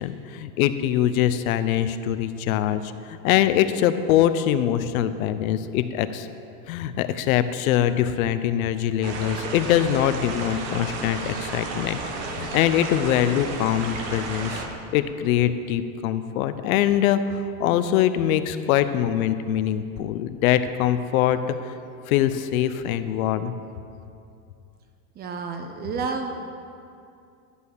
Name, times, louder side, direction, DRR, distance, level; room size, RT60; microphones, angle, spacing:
voice 1, 0.0-6.3 6.7-12.0 12.3-14.6 14.9-21.6 22.1-23.5, left 11 dB, 80° left, 12 dB, 0.7 m, -23 dB
sound 1, 9.0-14.7, right 3 dB, 55° right, 1.4 m, -32 dB
voice 2, 25.2-26.3, right 5 dB, 25° right, 5 dB, 0.6 m, -30 dB
11.5 x 5.4 x 6.4 m, 2.5 s
supercardioid pair, 155°, 42 cm